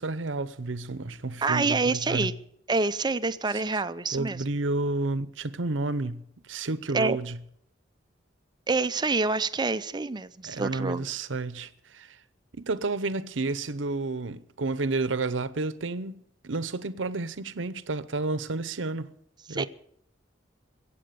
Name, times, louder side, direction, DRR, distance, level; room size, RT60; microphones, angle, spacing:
voice 1, 0.0-2.3 4.1-7.4 10.4-12.2 12.6-19.1 19.5-19.7, right 3 dB, 85° right, 0.8 m, -31 dB
voice 2, 1.4-2.3 2.7-4.4 6.9-7.2 8.7-11.0 19.5-19.7, right 3 dB, 25° right, 0.5 m, -27 dB
22.5 x 8.6 x 6.9 m
head